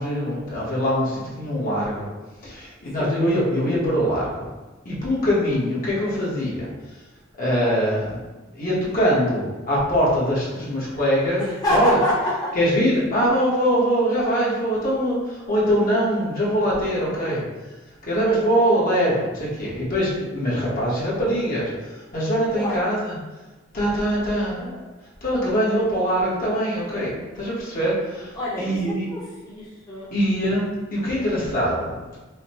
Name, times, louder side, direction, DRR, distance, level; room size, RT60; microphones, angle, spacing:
voice 1, 0.0-2.1 2.4-4.5 4.8-6.7 7.4-8.2 8.5-11.4 11.7-12.0 12.5-17.4 18.0-23.2 23.7-24.8 25.2-29.1 30.1-32.2, equal, 45° left, -7 dB, 1.1 m, -23 dB
voice 2, 11.4-12.5 22.6-22.8 28.3-30.1, left 1 dB, 20° left, -10 dB, 0.9 m, -26 dB
4.9 x 2.1 x 2.9 m, 1.2 s
head